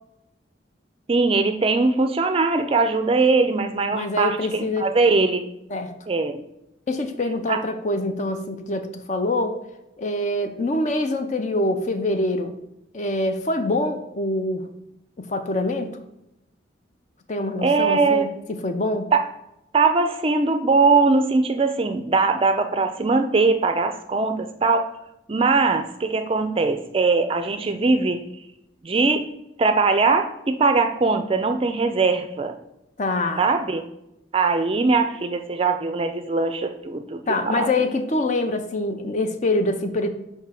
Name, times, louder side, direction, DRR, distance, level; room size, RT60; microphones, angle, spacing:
voice 1, 1.1-5.4 6.1-6.4 7.5-7.6 17.6-18.3 19.1-19.2 19.7-24.9 25.3-28.2 28.8-29.3 29.6-32.6 33.4-33.8 34.3-37.7, right 3 dB, 30° right, 7 dB, 0.4 m, -21 dB
voice 2, 3.9-4.8 5.7-5.9 6.9-9.6 10.0-12.5 12.9-14.6 15.2-15.9 17.3-18.3 18.6-19.1 33.0-33.4 37.3-40.1, left 2 dB, 40° left, 7 dB, 0.5 m, -25 dB
5.4 x 3.6 x 5.7 m, 0.85 s
head